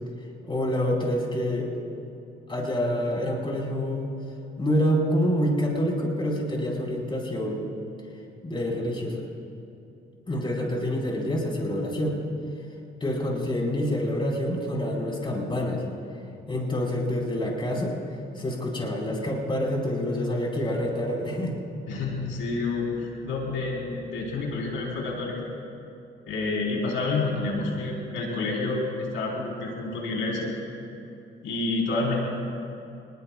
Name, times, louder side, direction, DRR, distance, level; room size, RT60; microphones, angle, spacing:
voice 1, 0.5-1.7 2.5-4.1 4.6-7.7 8.4-9.2 10.3-12.2 13.0-15.8 16.5-18.0 18.3-21.6, equal, 25° left, -2 dB, 4.8 m, -27 dB
voice 2, 21.9-25.3 26.3-30.5 31.4-32.2, left 3 dB, 80° left, -2 dB, 4.1 m, -29 dB
27.0 x 21.0 x 2.4 m, 2.7 s
cardioid pair, 90°, 20 cm